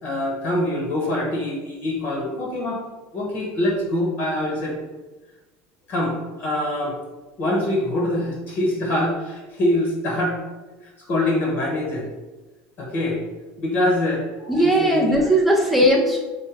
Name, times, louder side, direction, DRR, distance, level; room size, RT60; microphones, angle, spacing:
voice 1, 0.0-2.8 3.1-4.8 5.9-7.0 7.4-10.4 11.1-12.1 12.8-13.2 13.6-14.2 14.5-15.4, left 1 dB, 40° left, -1 dB, 1.0 m, -24 dB
voice 2, 14.4-16.2, right 1 dB, ahead, -1 dB, 0.4 m, -18 dB
4.9 x 2.2 x 4.5 m, 1.2 s
supercardioid pair, 145°, 5 cm